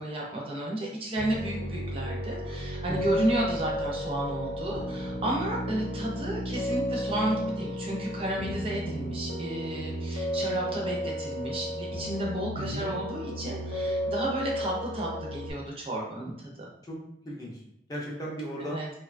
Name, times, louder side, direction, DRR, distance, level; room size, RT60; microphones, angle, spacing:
voice 1, 0.0-16.7 18.6-18.9, right 1 dB, 30° right, -2 dB, 0.5 m, -32 dB
Piano, 1.2-15.5, equal, 70° left, 0.6 m, -33 dB
voice 2, 2.9-3.3 12.6-12.9 16.8-17.0 17.2-17.6 17.9-18.8, equal, 20° left, -4 dB, 0.5 m, -36 dB
2.7 x 2.2 x 2.4 m, 0.76 s
head